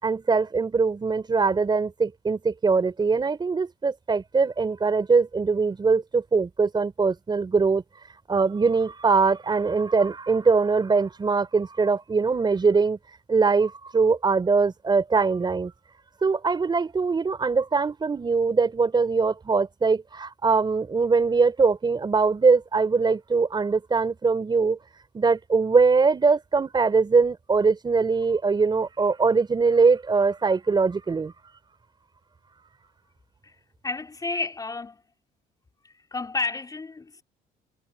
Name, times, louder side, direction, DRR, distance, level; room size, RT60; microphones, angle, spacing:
voice 1, 0.0-7.8 8.3-13.0 13.3-15.7 16.2-24.8 25.1-31.3 32.6-32.7, right 4 dB, 25° right, 4.2 m, -22 dB
voice 2, 33.8-35.0 35.8-37.2, left 3 dB, 20° left, 4.0 m, -31 dB
cardioid pair, 110°, 17 cm